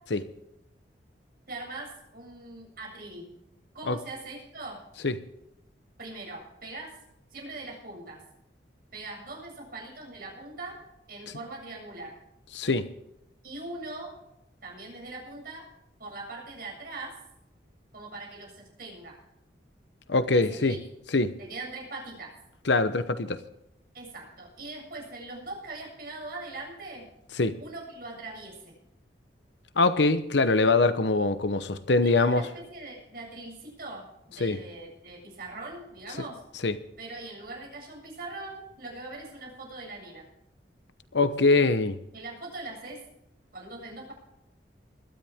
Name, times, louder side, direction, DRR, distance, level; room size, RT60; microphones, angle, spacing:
voice 1, 1.5-3.3 3.7-4.8 6.0-6.9 7.3-8.2 8.9-10.8 11.1-12.2 13.4-14.1 14.6-15.7 16.0-17.1 17.9-19.2 20.3-20.8 21.4-22.3 23.9-27.1 27.6-28.8 32.0-36.4 37.0-40.3 42.1-43.0 43.5-44.1, right 2 dB, 55° right, 7.6 m, -41 dB
voice 2, 12.5-12.9 20.1-20.8 21.1-21.3 22.7-23.4 27.4-27.6 29.8-32.4 34.4-34.6 36.6-36.8 41.1-42.0, left 3 dB, 75° left, 0.9 m, -23 dB
21.0 x 13.0 x 3.6 m
head